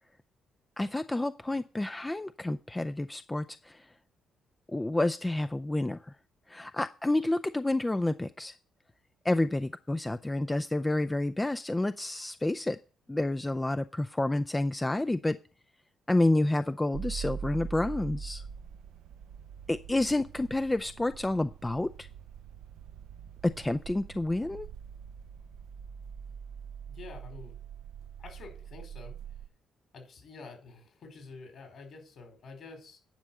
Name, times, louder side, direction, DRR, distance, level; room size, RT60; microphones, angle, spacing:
voice 1, 0.8-3.8 4.7-6.0 6.5-8.5 9.2-12.8 13.1-15.4 16.1-18.4 19.7-22.1 23.4-24.7, left 2 dB, 15° left, 10 dB, 0.4 m, -29 dB
sound 1, 16.9-29.5, right 7 dB, 85° right, 0.6 m, -43 dB
voice 2, 26.9-27.5 28.2-29.2 29.9-33.0, left 4 dB, 60° left, 4 dB, 4.9 m, -48 dB
9.9 x 5.3 x 7.5 m, 0.36 s
cardioid pair, 90°, 0 cm